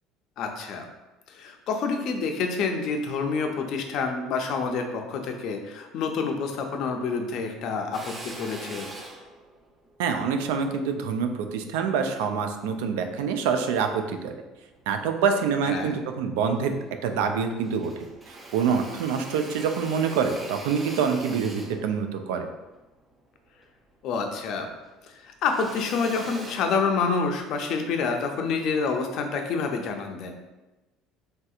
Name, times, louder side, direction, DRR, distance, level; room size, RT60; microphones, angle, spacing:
voice 1, 0.4-0.9 1.3-8.9 15.7-16.0 24.0-24.7 25.1-30.3, left 5 dB, 60° left, 4 dB, 0.4 m, -28 dB
Drill, 7.9-12.5 13.0-14.2 14.7-15.6 16.0-16.1 16.3-17.3 17.6-24.3 24.5-27.4, right 2 dB, 20° right, 0.4 m, -43 dB
voice 2, 10.0-14.3 14.9-16.8 17.0-17.9 18.3-22.5, right 6 dB, 85° right, 6 dB, 0.3 m, -26 dB
3.3 x 2.7 x 2.4 m, 1.1 s
supercardioid pair, 105°, 0 cm